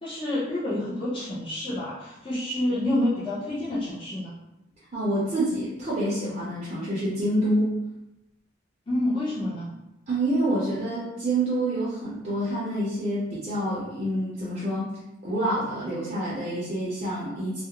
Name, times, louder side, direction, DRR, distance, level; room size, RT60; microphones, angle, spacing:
voice 1, 0.0-4.3 8.9-9.7, left 1 dB, 25° left, -10 dB, 0.5 m, -28 dB
voice 2, 4.9-7.7 10.1-14.9 15.2-17.6, right 1 dB, 40° right, -9 dB, 0.5 m, -27 dB
2.4 x 2.0 x 2.8 m, 0.92 s
head